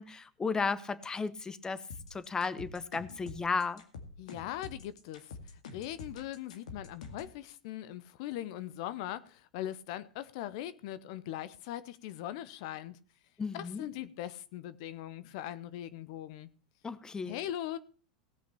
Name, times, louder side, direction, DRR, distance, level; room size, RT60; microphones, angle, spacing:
voice 1, 0.0-1.8 2.1-3.8 13.4-13.9 16.8-17.4, left 4 dB, 20° left, 0.9 m, -34 dB
sound 1, 1.9-7.3, left 4 dB, 80° left, 2.2 m, -46 dB
voice 2, 4.2-13.0 13.5-16.5 17.3-17.8, left 12 dB, 65° left, 0.7 m, -40 dB
17.5 x 5.9 x 7.0 m
hypercardioid pair, 95°, 4 cm